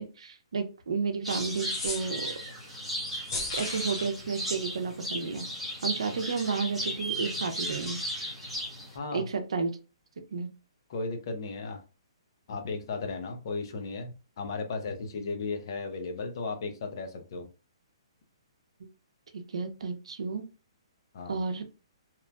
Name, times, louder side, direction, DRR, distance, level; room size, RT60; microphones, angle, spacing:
voice 1, 0.0-2.3 3.5-5.5 5.8-8.0 9.1-9.8 10.3-10.5 19.3-20.5 21.3-21.6, right 5 dB, 80° right, 6 dB, 0.6 m, -32 dB
sound 1, 1.2-9.0, equal, ahead, 0.8 m, -35 dB
sound 2, 1.6-2.5 3.2-4.1, left 3 dB, 35° left, 0.9 m, -36 dB
voice 2, 8.9-9.3 10.9-11.8 12.5-17.5 21.1-21.4, left 3 dB, 50° left, 5 dB, 0.6 m, -35 dB
2.9 x 2.4 x 2.2 m, 0.33 s
hypercardioid pair, 160°, 3 cm